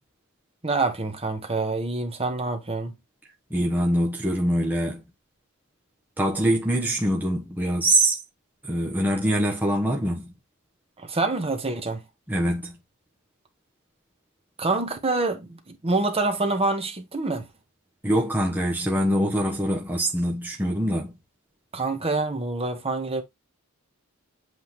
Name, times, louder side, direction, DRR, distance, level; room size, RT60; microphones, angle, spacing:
voice 1, 0.6-2.9 11.0-12.0 14.6-17.5 21.7-23.2, right 3 dB, 25° right, 1.4 m, -26 dB
voice 2, 3.5-5.0 6.2-8.2 8.6-10.3 12.3-12.8 18.0-21.1, right 1 dB, 10° right, 1.1 m, -24 dB
8.0 x 3.8 x 3.1 m
head